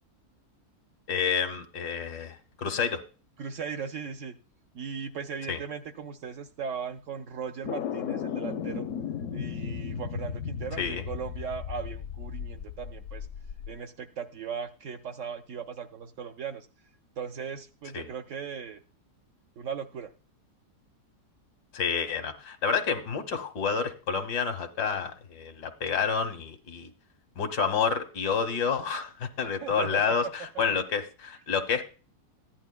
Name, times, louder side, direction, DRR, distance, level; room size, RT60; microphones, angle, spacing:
voice 1, 1.1-3.0 5.5-5.6 10.8-11.0 17.9-18.1 21.7-26.9 27.4-31.8, left 6 dB, 90° left, 9 dB, 1.6 m, -29 dB
voice 2, 3.4-4.4 4.7-8.9 9.3-13.3 13.7-16.7 17.2-18.8 19.6-20.1 29.6-30.3, right 6 dB, 65° right, 7 dB, 0.8 m, -38 dB
sound 1, 7.6-13.7, left 7 dB, 65° left, 0.8 m, -35 dB
14.5 x 10.5 x 2.3 m, 0.35 s
omnidirectional pair, 1.7 m